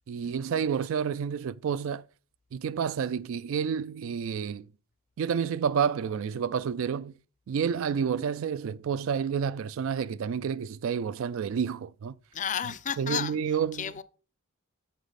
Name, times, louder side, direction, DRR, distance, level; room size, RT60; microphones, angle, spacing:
voice 1, 0.1-2.0 2.5-4.7 5.2-7.1 7.5-12.1 12.7-13.9, right 7 dB, 65° right, 0.3 m, -29 dB
voice 2, 12.3-13.4 13.8-14.0, left 8 dB, 35° left, 0.5 m, -32 dB
8.1 x 7.1 x 4.1 m
head